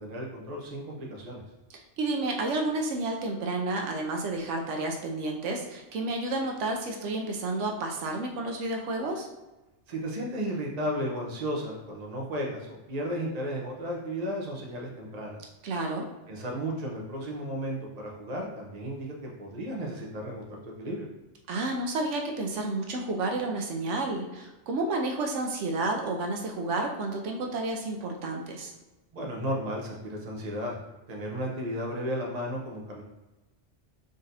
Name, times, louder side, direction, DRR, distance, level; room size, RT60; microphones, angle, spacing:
voice 1, 0.0-1.4 9.9-15.4 16.3-21.1 29.1-30.8 31.1-33.0, equal, 40° right, -1 dB, 0.9 m, -34 dB
voice 2, 2.0-9.3 15.6-16.1 21.5-28.7, right 2 dB, 85° right, 2 dB, 1.0 m, -31 dB
4.1 x 3.8 x 2.6 m, 1.1 s
omnidirectional pair, 1.2 m